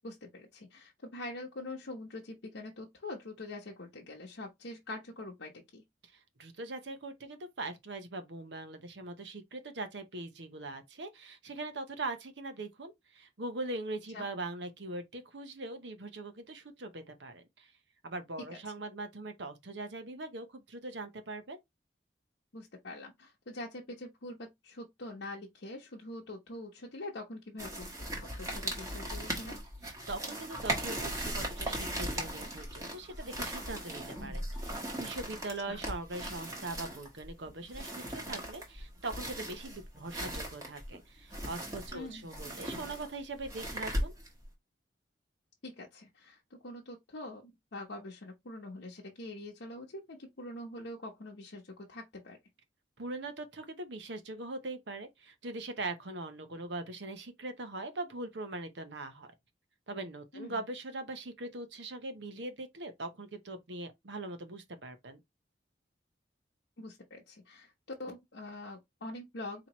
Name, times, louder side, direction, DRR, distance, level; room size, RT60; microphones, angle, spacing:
voice 1, 0.0-5.8 14.1-14.2 22.5-29.6 35.7-35.8 41.9-42.3 45.6-52.4 60.3-60.6 66.8-67.7 68.0-69.7, left 2 dB, 75° left, 0.9 m, -44 dB
voice 2, 6.1-17.7 18.0-21.6 30.1-44.1 53.0-59.3 59.9-65.2, right 2 dB, 70° right, 0.8 m, -41 dB
sound 1, 27.6-44.5, right 1 dB, 20° right, 1.2 m, -38 dB
4.3 x 2.9 x 2.9 m
head